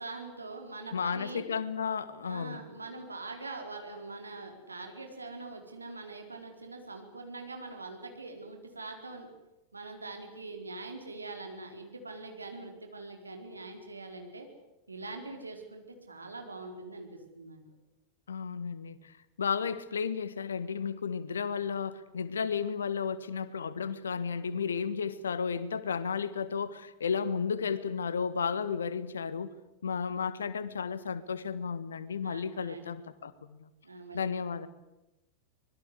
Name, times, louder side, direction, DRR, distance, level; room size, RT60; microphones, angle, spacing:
voice 1, 0.0-1.4 2.2-9.3 9.7-14.5 14.9-17.1 17.3-17.6 32.2-32.9 33.8-34.3, right 3 dB, 80° right, 4 dB, 4.4 m, -43 dB
voice 2, 0.9-2.6 18.3-19.1 19.4-29.5 29.8-33.7 34.1-34.7, left 6 dB, 70° left, 16 dB, 1.5 m, -33 dB
25.0 x 21.5 x 8.2 m, 0.99 s
figure-of-eight pair, 90°, 0 cm